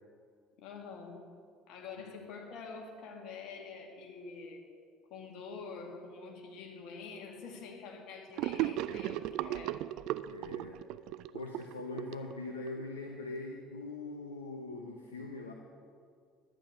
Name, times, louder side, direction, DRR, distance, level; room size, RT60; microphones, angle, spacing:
voice 1, 0.6-1.2 1.7-4.7 5.1-9.8, left 4 dB, 60° left, 1 dB, 2.1 m, -46 dB
Gurgling / Sink (filling or washing), 8.4-12.9, right 14 dB, 60° right, 0.3 m, -36 dB
voice 2, 10.3-10.8 11.3-15.5, left 2 dB, 85° left, 2 dB, 0.7 m, -42 dB
11.5 x 9.2 x 6.3 m, 2.2 s
figure-of-eight pair, 60°, 0 cm